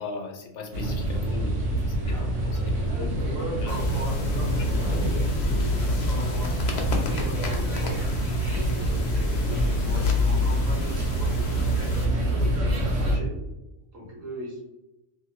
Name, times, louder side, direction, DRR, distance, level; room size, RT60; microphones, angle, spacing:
voice 1, 0.0-1.6 1.9-3.1 3.6-3.8 5.6-5.7, left 4 dB, 70° left, 0 dB, 0.8 m, -38 dB
sound 1, 0.7-13.2, equal, 60° right, 1.0 m, -25 dB
voice 2, 2.9-4.6 4.8-5.0 5.4-8.0 8.5-13.4 13.9-14.6, equal, 75° right, -2 dB, 1.3 m, -39 dB
sound 2, 3.7-12.1, left 2 dB, 90° left, 0.4 m, -36 dB
sound 3, 8.3-13.3, right 2 dB, 40° right, 0.6 m, -40 dB
2.9 x 2.1 x 3.1 m, 0.97 s
omnidirectional pair, 1.4 m